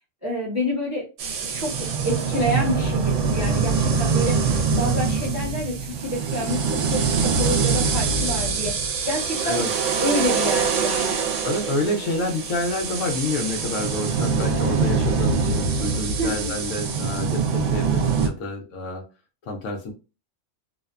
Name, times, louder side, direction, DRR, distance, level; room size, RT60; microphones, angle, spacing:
voice 1, 0.2-1.1 1.5-9.7 10.0-11.2 16.2-16.5, equal, 15° right, -3 dB, 0.7 m, -28 dB
sound 1, 1.2-18.3, right 5 dB, 75° right, 0.9 m, -24 dB
voice 2, 3.3-3.8 9.4-9.7 11.4-19.1 19.4-19.9, left 2 dB, 85° left, 1 dB, 0.9 m, -28 dB
2.6 x 2.1 x 2.4 m, 0.30 s
omnidirectional pair, 1.3 m